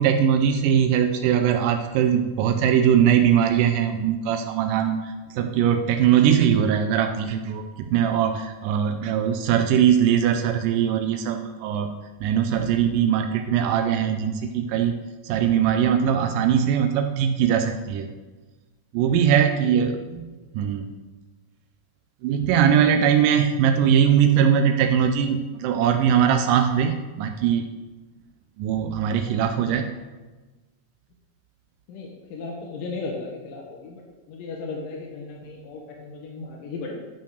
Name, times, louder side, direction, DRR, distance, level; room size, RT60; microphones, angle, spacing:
voice 1, 0.0-11.9 12.2-14.9 15.2-18.1 18.9-19.9 20.5-20.9 22.2-27.7 28.6-29.9, right 8 dB, 90° right, 6 dB, 2.3 m, -21 dB
voice 2, 19.6-20.1 31.9-34.0 34.3-37.0, left 3 dB, 85° left, 0 dB, 2.8 m, -35 dB
10.5 x 5.8 x 6.4 m, 1.2 s
omnidirectional pair, 3.8 m